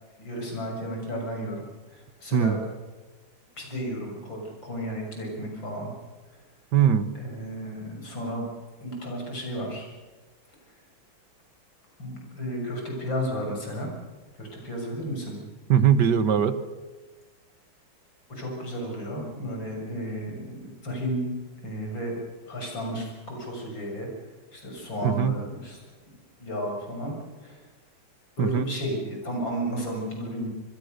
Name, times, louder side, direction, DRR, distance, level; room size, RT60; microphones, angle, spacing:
voice 1, 0.2-1.6 1.9-2.6 3.6-5.9 7.1-8.5 8.8-9.9 12.0-13.9 14.3-15.4 18.3-21.3 21.6-22.2 22.5-24.1 24.5-25.8 26.4-27.1 27.4-27.6 28.4-30.5, equal, 65° left, 1 dB, 7.2 m, -33 dB
voice 2, 6.7-7.1 15.7-16.6 25.0-25.3 28.4-28.7, right 8 dB, 60° right, 13 dB, 1.7 m, -20 dB
25.5 x 22.0 x 6.6 m, 1.3 s
omnidirectional pair, 2.2 m